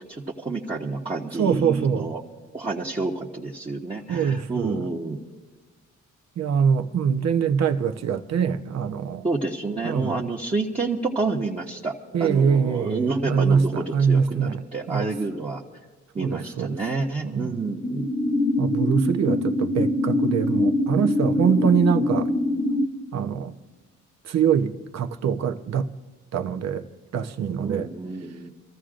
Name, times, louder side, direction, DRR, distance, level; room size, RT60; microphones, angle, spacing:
voice 1, 0.1-2.2 2.5-5.2 9.2-11.9 12.2-15.6 16.1-18.1 27.6-28.5, right 3 dB, 20° right, 1.2 m, -29 dB
voice 2, 1.4-2.1 4.1-4.9 6.4-9.2 9.8-10.3 12.1-15.1 16.2-16.8 17.2-17.6 18.6-22.3 23.1-23.5 24.2-25.9 26.3-27.9, right 7 dB, 60° right, 0.9 m, -24 dB
sound 1, 17.8-22.8, left 1 dB, 40° left, 1.1 m, -23 dB
27.5 x 14.5 x 2.5 m
cardioid pair, 90°, 30 cm